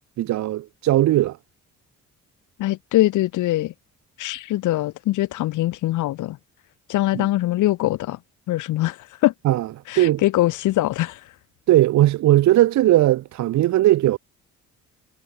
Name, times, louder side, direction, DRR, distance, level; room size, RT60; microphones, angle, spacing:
voice 1, 0.2-1.4 7.1-7.3 9.4-9.7 10.0-10.2 11.7-14.2, right 14 dB, 70° right, 0.7 m, -18 dB
voice 2, 2.6-3.7 4.2-6.4 6.9-8.2 8.5-9.3 9.9-11.2, left 16 dB, 85° left, 1.2 m, -22 dB
cardioid pair, 90°, 30 cm